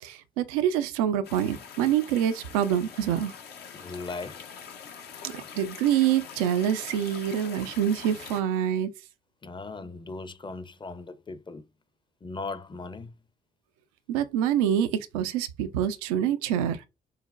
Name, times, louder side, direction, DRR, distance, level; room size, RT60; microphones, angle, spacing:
voice 1, 0.0-3.3 5.2-8.9 14.1-16.8, right 10 dB, 85° right, 0.4 m, -26 dB
sound 1, 1.2-8.4, left 7 dB, 65° left, 0.8 m, -44 dB
voice 2, 3.7-4.4 9.4-11.7 12.2-13.1, left 3 dB, 25° left, 0.6 m, -38 dB
5.5 x 2.1 x 2.4 m
hypercardioid pair, 40°, 18 cm